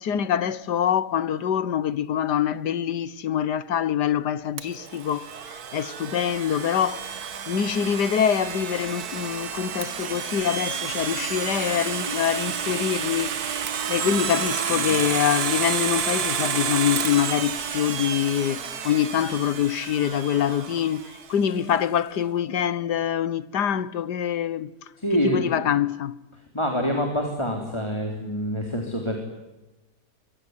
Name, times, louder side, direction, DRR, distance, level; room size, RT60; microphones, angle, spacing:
voice 1, 0.0-5.3 5.7-7.1 7.5-13.6 13.9-24.7 25.2-26.2, left 9 dB, 85° left, 1.7 m, -25 dB
Domestic sounds home sounds, 4.6-21.3, right 7 dB, 70° right, 1.8 m, -30 dB
voice 2, 25.0-25.6 26.5-29.2, equal, 15° left, 3.8 m, -26 dB
25.5 x 23.0 x 9.7 m
omnidirectional pair, 1.7 m